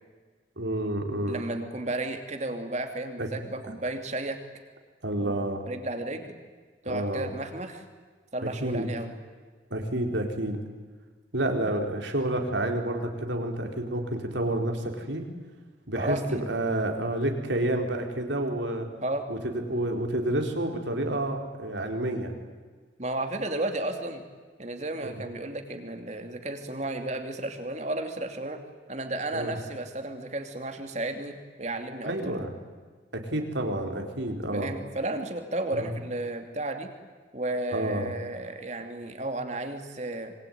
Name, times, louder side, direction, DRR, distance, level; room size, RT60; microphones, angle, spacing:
voice 1, 0.6-1.5 3.2-3.3 5.0-5.6 6.8-7.3 8.4-8.9 9.7-10.6 11.3-15.2 15.9-16.2 16.5-18.9 19.3-22.3 25.0-25.2 29.3-29.5 32.0-32.5 33.1-34.7 35.7-35.9 37.7-38.1, right 1 dB, 75° right, 4 dB, 4.1 m, -29 dB
voice 2, 1.3-4.4 5.2-5.4 5.6-6.4 6.8-7.8 8.3-9.1 15.9-16.4 19.0-19.3 23.0-24.2 24.6-28.6 28.9-32.3 34.5-36.9 37.3-40.3, right 2 dB, 35° right, 6 dB, 2.8 m, -33 dB
26.0 x 23.5 x 9.4 m, 1.4 s
head